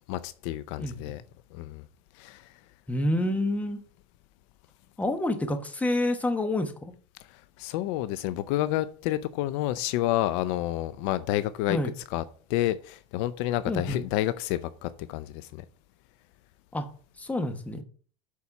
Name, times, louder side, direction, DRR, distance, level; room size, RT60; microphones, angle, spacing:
voice 1, 0.1-1.2 1.5-1.8 2.2-2.5 7.3-11.8 12.1-12.2 12.5-15.6, left 14 dB, 70° left, 0.6 m, -29 dB
voice 2, 0.8-1.1 2.9-3.8 5.0-6.9 11.7-11.9 13.7-14.0 16.7-16.9 17.2-17.8, left 1 dB, 10° left, 1.2 m, -28 dB
8.3 x 4.3 x 5.9 m
supercardioid pair, 130°, 16 cm